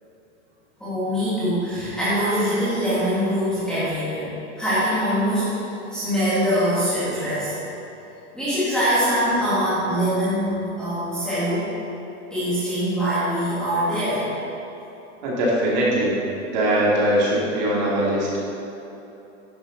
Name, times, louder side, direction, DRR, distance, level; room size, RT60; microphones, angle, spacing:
voice 1, 0.8-4.3 4.6-7.5 8.3-11.7 12.3-14.3, equal, ahead, -13 dB, 1.4 m, -23 dB
voice 2, 15.2-16.1 16.5-18.4, right 1 dB, 35° right, -5 dB, 2.3 m, -21 dB
10.5 x 8.0 x 3.9 m, 3.0 s
supercardioid pair, 175°, 37 cm